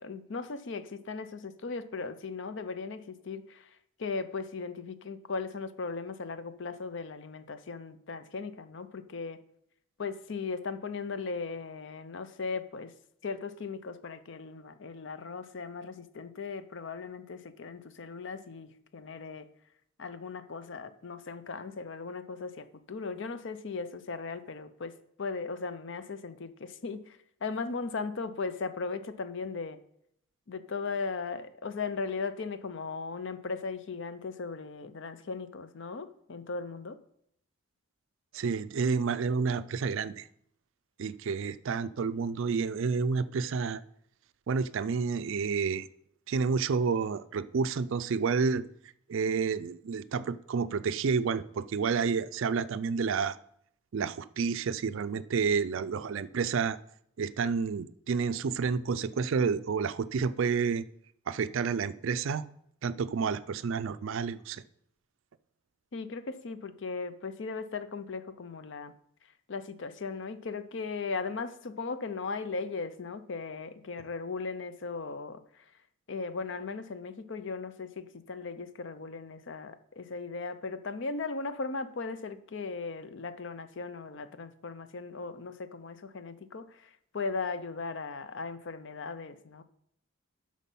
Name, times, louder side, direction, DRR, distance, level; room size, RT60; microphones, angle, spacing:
voice 1, 0.0-9.4 10.0-12.9 13.2-19.5 20.0-29.8 30.5-37.0 65.9-68.9 69.5-75.6 76.1-89.6, left 4 dB, 55° left, 12 dB, 0.5 m, -37 dB
voice 2, 38.3-40.3 41.0-43.8 44.5-45.9 46.3-48.6 49.1-53.4 53.9-56.8 57.2-60.9 61.3-62.4 62.8-64.6, right 5 dB, 60° right, 13 dB, 0.4 m, -30 dB
8.3 x 6.2 x 5.4 m, 0.71 s
head